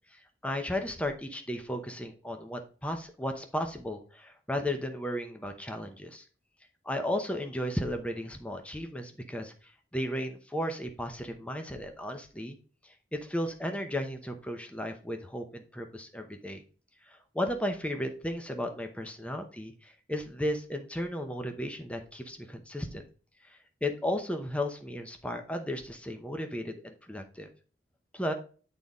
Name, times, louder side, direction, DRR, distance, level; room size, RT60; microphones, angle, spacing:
voice 1, 0.1-6.2 6.8-12.6 12.8-16.6 17.1-23.0 23.5-27.5 28.1-28.3, left 1 dB, 5° left, 5 dB, 0.8 m, -35 dB
9.0 x 4.0 x 3.6 m, 0.39 s
head